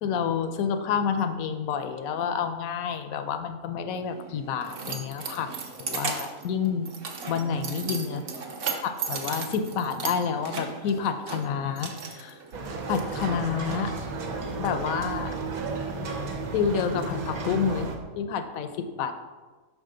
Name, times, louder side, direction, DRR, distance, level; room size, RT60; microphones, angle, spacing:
voice 1, 0.0-5.5 5.8-6.9 7.3-8.2 8.8-12.4 12.9-14.0 14.6-15.4 16.5-19.1, left 6 dB, 80° left, 8 dB, 1.0 m, -29 dB
Keys jangling, 3.9-13.0, right 5 dB, 50° right, 0.8 m, -36 dB
sound 1, 12.5-18.0, right 3 dB, 80° right, 1.2 m, -33 dB
5.9 x 5.1 x 3.8 m, 1.3 s
omnidirectional pair, 1.5 m